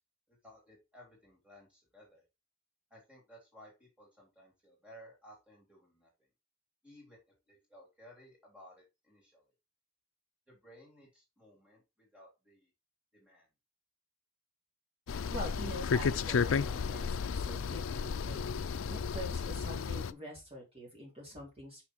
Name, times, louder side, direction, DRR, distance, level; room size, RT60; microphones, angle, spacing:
voice 1, 0.3-2.2 2.9-6.1 6.8-7.2 7.5-9.5 10.5-12.7 13.1-13.5, equal, 5° right, -2 dB, 3.3 m, -58 dB
sound 1, 15.1-20.1, left 6 dB, 60° left, 0.4 m, -33 dB
voice 2, 15.3-18.5 18.9-21.8, equal, 25° right, -2 dB, 3.1 m, -45 dB
6.1 x 5.9 x 4.5 m, 0.25 s
head